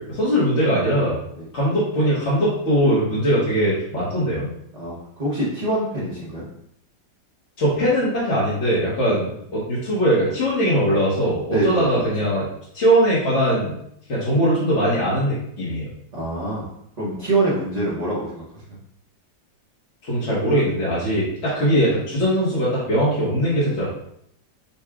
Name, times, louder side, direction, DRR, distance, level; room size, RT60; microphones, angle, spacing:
voice 1, 0.0-1.2 1.5-4.5 7.6-12.5 12.7-13.8 14.1-15.9 20.0-23.9, equal, 45° left, -8 dB, 1.2 m, -21 dB
voice 2, 4.7-6.5 9.0-9.3 11.5-12.0 16.1-16.6 17.0-18.6, right 2 dB, 30° right, -9 dB, 0.9 m, -25 dB
5.8 x 2.3 x 3.5 m, 0.72 s
omnidirectional pair, 2.1 m